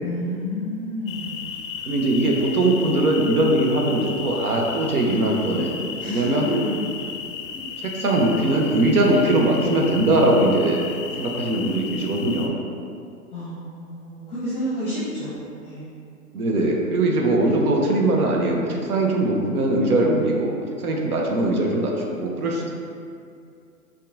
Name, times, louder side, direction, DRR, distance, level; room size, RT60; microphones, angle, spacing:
voice 1, 0.0-1.7 6.0-6.2 6.6-6.9 13.3-15.9, equal, 15° left, -11 dB, 0.6 m, -30 dB
sound 1, 1.1-12.5, left 7 dB, 60° left, 0.5 m, -34 dB
voice 2, 1.9-5.7 6.1-6.5 8.0-10.8 11.2-12.5 16.3-22.7, right 1 dB, 70° right, 0 dB, 0.8 m, -21 dB
5.2 x 2.4 x 2.6 m, 2.4 s
figure-of-eight pair, 120°, 46 cm